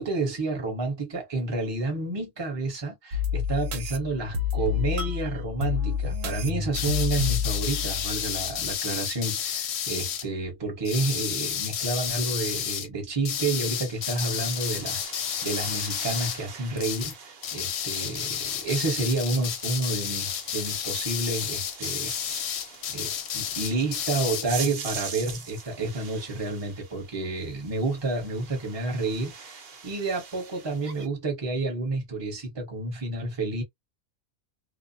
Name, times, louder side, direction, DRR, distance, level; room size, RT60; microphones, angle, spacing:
voice 1, 0.0-22.1 22.9-33.6, right 3 dB, 20° right, 1.0 m, -30 dB
sound 1, 3.1-8.7, left 6 dB, 80° right, 1.0 m, -29 dB
sound 2, 6.7-10.3 10.8-12.9 13.2-16.5 16.8-17.2 17.4-24.5, left 9 dB, 65° left, 0.7 m, -31 dB
sound 3, 13.7-31.1, right 5 dB, 50° right, 0.8 m, -43 dB
2.3 x 2.0 x 2.6 m
omnidirectional pair, 1.3 m